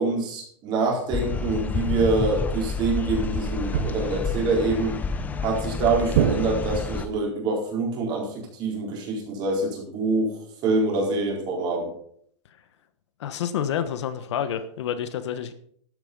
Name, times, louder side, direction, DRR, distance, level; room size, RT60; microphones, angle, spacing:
voice 1, 0.0-5.0 5.4-10.4 10.6-11.9, right 3 dB, 30° right, -1 dB, 4.4 m, -25 dB
sound 1, 1.1-7.1, left 4 dB, 10° left, 0.7 m, -29 dB
sound 2, 3.7-4.3 6.1-7.0, right 9 dB, 55° right, 1.0 m, -25 dB
voice 2, 13.2-15.5, left 9 dB, 65° left, 11 dB, 1.3 m, -28 dB
13.0 x 8.3 x 5.4 m, 0.63 s
supercardioid pair, 160°, 16 cm